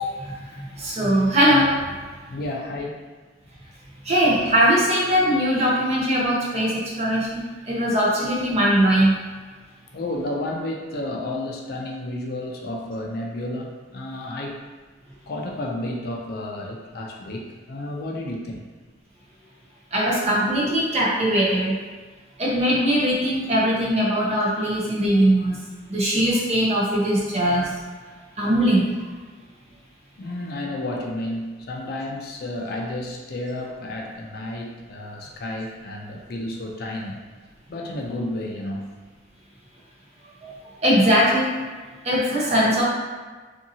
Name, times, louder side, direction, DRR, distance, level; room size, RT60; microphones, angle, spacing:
voice 1, 0.2-2.0 4.0-9.1 19.9-21.8 22.4-25.6 25.9-27.7 28.4-28.9 40.4-40.5 40.8-41.5 42.0-42.8, equal, 35° right, -5 dB, 0.6 m, -20 dB
voice 2, 2.3-3.0 9.9-14.6 15.3-18.6 30.2-37.2 37.7-39.0, left 1 dB, 55° left, 0 dB, 0.4 m, -31 dB
2.7 x 2.6 x 2.7 m, 1.4 s
head